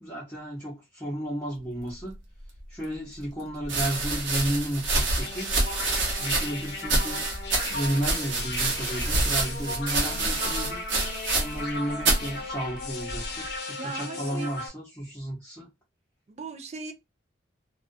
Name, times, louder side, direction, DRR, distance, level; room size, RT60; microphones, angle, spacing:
voice 1, 0.0-2.2 2.7-5.5 6.2-7.3 7.7-10.8 11.3-15.7, right 1 dB, 10° left, 0.7 m, -33 dB
sound 1, 2.6-2.7 3.6-11.7 12.0-12.3 13.1-13.5, right 2 dB, 70° right, 0.8 m, -27 dB
sound 2, 5.2-14.7, left 3 dB, 55° left, 0.7 m, -37 dB
voice 2, 13.8-14.5 16.3-16.9, right 4 dB, 35° right, 0.3 m, -38 dB
2.3 x 2.2 x 2.5 m
head